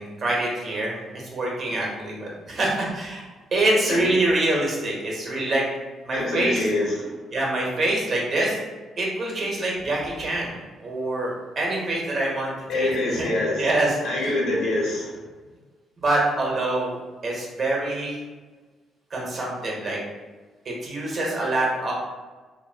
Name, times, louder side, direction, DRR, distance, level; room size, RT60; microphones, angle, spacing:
voice 1, 0.0-3.2 3.5-5.6 6.1-6.6 7.3-8.6 9.0-10.6 10.8-12.9 13.2-13.3 13.6-14.3 16.0-16.9 17.2-18.1 19.1-20.0 20.8-21.9, right 2 dB, 50° right, -3 dB, 1.0 m, -25 dB
voice 2, 6.1-7.1 12.7-13.7 14.0-15.1, left 2 dB, 80° left, -4 dB, 1.0 m, -25 dB
2.8 x 2.7 x 2.7 m, 1.3 s
cardioid pair, 90°, 0 cm